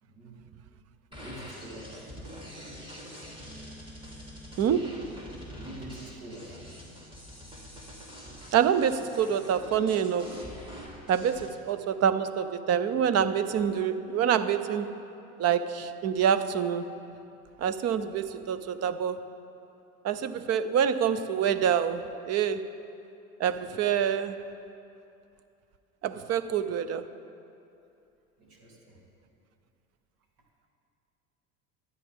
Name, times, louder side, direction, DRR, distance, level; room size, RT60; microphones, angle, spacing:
voice 1, 0.0-0.4 1.1-2.1 5.6-6.6 28.4-29.0, right 1 dB, 65° right, -3 dB, 3.6 m, -45 dB
sound 1, 1.1-11.5, equal, 10° right, 3.0 m, -45 dB
voice 2, 4.6-5.0 8.5-10.4 11.1-15.0 15.4-16.9 17.6-19.3 20.0-22.7 23.4-24.4 26.0-27.1, right 8 dB, 35° right, 13 dB, 0.8 m, -26 dB
24.0 x 9.3 x 3.7 m, 2.7 s
hypercardioid pair, 75°, 42 cm